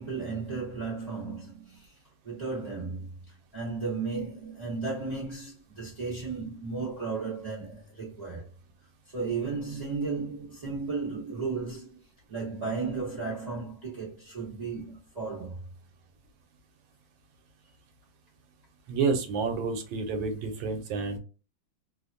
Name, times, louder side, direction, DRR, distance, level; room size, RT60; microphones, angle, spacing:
voice 1, 0.0-1.9 2.2-8.5 9.1-12.0 12.3-15.6, right 4 dB, 25° right, 1.0 m, -34 dB
voice 2, 18.9-21.2, right 4 dB, 80° right, 1.4 m, -29 dB
3.3 x 2.1 x 2.4 m
omnidirectional pair, 2.1 m